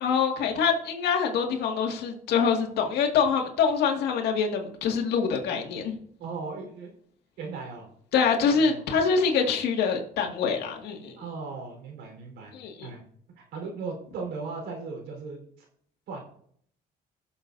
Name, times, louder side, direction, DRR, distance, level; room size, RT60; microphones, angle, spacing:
voice 1, 0.0-6.0 8.1-11.1 12.5-12.9, left 6 dB, 75° left, 2 dB, 2.1 m, -25 dB
voice 2, 6.2-6.9 7.4-7.9 8.5-8.8 11.2-12.5 12.8-13.0 13.4-15.7 16.1-16.2, right 4 dB, 85° right, 1 dB, 4.3 m, -37 dB
21.0 x 7.1 x 2.7 m, 0.63 s
cardioid pair, 110°, 17 cm